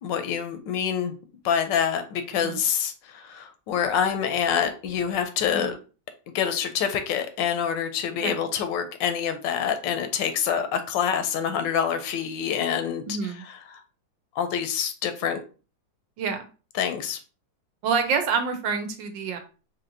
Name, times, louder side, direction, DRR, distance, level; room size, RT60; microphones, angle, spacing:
voice 1, 0.0-1.1 1.4-5.8 6.3-13.0 13.7-13.8 14.4-15.4 16.8-17.2, left 8 dB, 80° left, 8 dB, 1.3 m, -26 dB
voice 2, 13.1-13.5 16.2-16.4 17.8-19.4, right 5 dB, 80° right, 7 dB, 1.3 m, -27 dB
4.2 x 2.9 x 2.6 m, 0.35 s
omnidirectional pair, 2.0 m